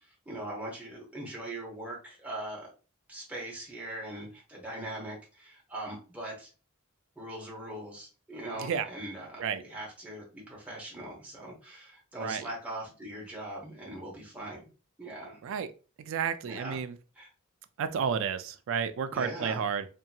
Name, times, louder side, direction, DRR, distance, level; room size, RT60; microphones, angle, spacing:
voice 1, 0.3-2.7 3.1-6.5 7.2-14.7 15.0-15.4 16.4-16.8 17.2-17.3 19.1-19.6, right 1 dB, 5° right, 0.8 m, -41 dB
voice 2, 8.6-8.9 9.4-9.6 12.2-12.5 15.4-15.7 16.0-17.0 17.8-19.9, right 7 dB, 65° right, 0.3 m, -31 dB
2.7 x 2.7 x 2.2 m
head